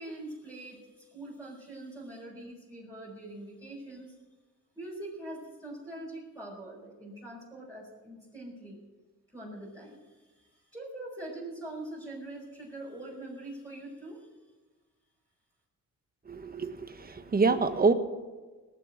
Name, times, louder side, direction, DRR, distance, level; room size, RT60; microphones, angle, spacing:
voice 1, 0.0-4.1 4.7-8.8 9.3-14.3, right 1 dB, 10° right, -7 dB, 5.3 m, -43 dB
voice 2, 16.3-17.9, right 4 dB, 25° right, 9 dB, 1.3 m, -26 dB
19.5 x 6.9 x 8.9 m, 1.3 s
cardioid pair, 95°, 33 cm